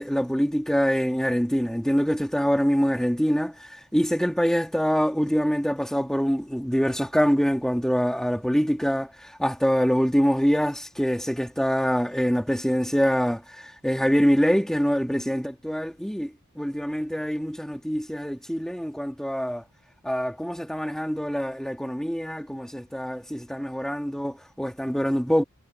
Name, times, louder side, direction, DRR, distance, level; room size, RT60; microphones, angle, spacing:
voice 1, 0.0-19.6 20.0-25.4, equal, ahead, 2.8 m, -25 dB
head